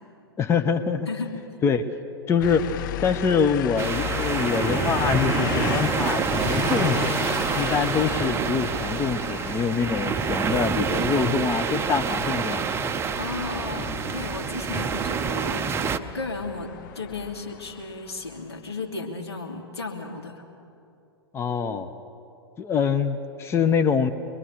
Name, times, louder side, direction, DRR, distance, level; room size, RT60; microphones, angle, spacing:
voice 1, 0.4-1.1 1.6-1.9 2.3-2.7 3.0-7.1 7.5-12.8 21.3-21.9 22.6-24.1, left 6 dB, 20° left, 9 dB, 0.8 m, -24 dB
voice 2, 1.1-1.4 13.2-15.7 15.9-20.4, left 3 dB, 80° left, 0 dB, 2.8 m, -34 dB
sound 1, 2.4-18.6, left 13 dB, 50° left, 0.5 m, -35 dB
sound 2, 3.8-16.0, right 6 dB, 20° right, 0.7 m, -27 dB
24.5 x 22.5 x 6.7 m, 2.7 s
figure-of-eight pair, 100°, 14 cm